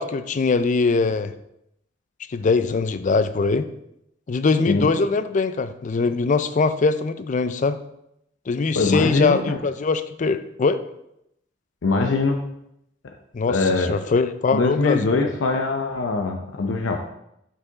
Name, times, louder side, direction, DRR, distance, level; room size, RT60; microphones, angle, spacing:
voice 1, 0.0-1.3 2.3-3.7 4.3-7.8 8.5-10.8 13.3-15.2, left 4 dB, 40° left, 12 dB, 0.4 m, -22 dB
voice 2, 8.8-9.6 11.8-12.4 13.5-13.9 14.5-17.1, left 3 dB, 85° left, 3 dB, 0.6 m, -22 dB
5.9 x 5.5 x 3.9 m, 0.80 s
head